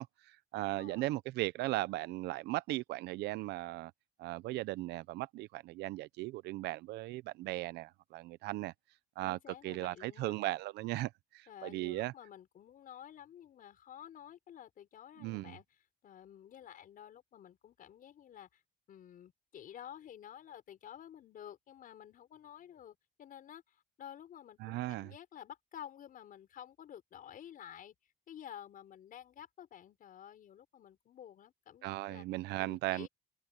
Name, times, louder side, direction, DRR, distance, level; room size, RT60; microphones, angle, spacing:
voice 1, 0.0-3.9 4.2-8.7 9.2-9.4 9.6-12.1 15.2-15.6 24.6-25.1 31.8-33.1, right 18 dB, 85° right, 0.7 m, -37 dB
voice 2, 0.6-1.1 9.2-10.3 11.5-15.6 16.0-18.6 18.9-27.9 28.3-32.3 32.6-33.1, left 10 dB, 55° left, 5.1 m, -52 dB
cardioid pair, 110°, 17 cm